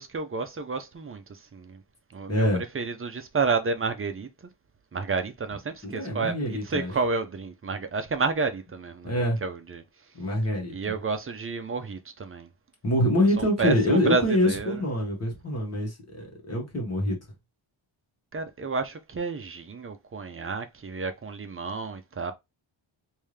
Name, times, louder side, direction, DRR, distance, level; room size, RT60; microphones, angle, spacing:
voice 1, 0.0-1.8 2.1-2.5 2.7-4.3 4.9-9.8 10.7-12.5 13.4-14.8 18.3-22.3, right 4 dB, 30° right, 0.5 m, -30 dB
voice 2, 2.3-2.6 5.8-6.9 9.0-9.4 10.1-10.7 12.8-17.2, left 1 dB, 30° left, 1.6 m, -25 dB
3.5 x 2.7 x 3.2 m
wide cardioid pair, 170°, 47 cm